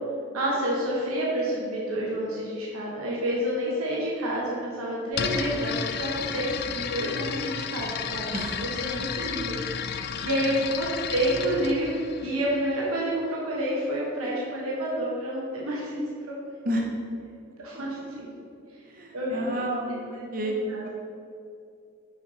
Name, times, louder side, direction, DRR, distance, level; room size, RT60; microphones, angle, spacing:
voice 1, 0.3-10.0 10.2-16.0 16.3-16.4 17.6-18.3 19.1-19.6 20.4-20.9, equal, 90° right, -5 dB, 1.2 m, -29 dB
sound 1, 5.1-12.9, left 7 dB, 50° left, 0.3 m, -33 dB
voice 2, 8.3-8.6 10.2-10.3 16.6-16.9 17.7-18.1 18.9-20.9, equal, 40° right, 1 dB, 0.8 m, -31 dB
6.1 x 5.4 x 4.1 m, 2.6 s
head